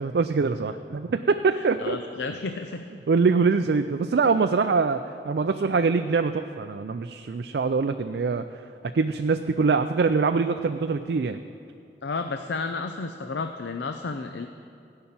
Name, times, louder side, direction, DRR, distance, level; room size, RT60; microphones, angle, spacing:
voice 1, 0.0-2.0 3.1-8.4 8.8-11.4, right 4 dB, 65° right, 7 dB, 0.4 m, -24 dB
voice 2, 1.8-2.9 12.0-14.5, left 4 dB, 85° left, 6 dB, 0.5 m, -32 dB
16.0 x 5.8 x 8.6 m, 2.5 s
head